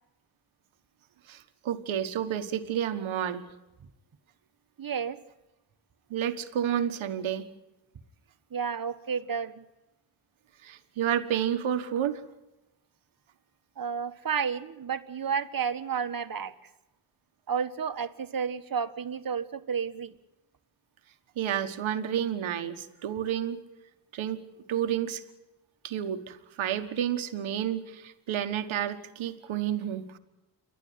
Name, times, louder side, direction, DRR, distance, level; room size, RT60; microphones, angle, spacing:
voice 1, 1.3-3.5 6.1-7.5 10.6-12.2 21.4-23.6 24.1-24.4 24.7-25.2 25.8-30.2, right 10 dB, 90° right, 8 dB, 1.5 m, -30 dB
voice 2, 4.8-5.2 8.5-9.6 13.8-16.5 17.5-20.1, right 6 dB, 45° right, 9 dB, 1.5 m, -31 dB
29.0 x 11.5 x 9.5 m, 0.98 s
cardioid pair, 70°, 47 cm